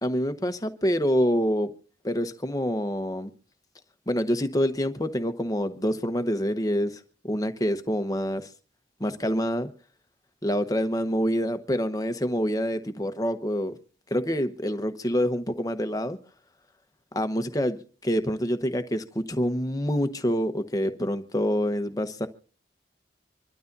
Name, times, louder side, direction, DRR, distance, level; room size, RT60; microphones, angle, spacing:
voice 1, 0.0-1.7 2.0-3.3 4.1-8.5 9.0-9.7 10.4-13.7 14.1-16.2 17.1-22.3, equal, 20° left, 1.0 m, -26 dB
26.5 x 12.5 x 2.7 m
head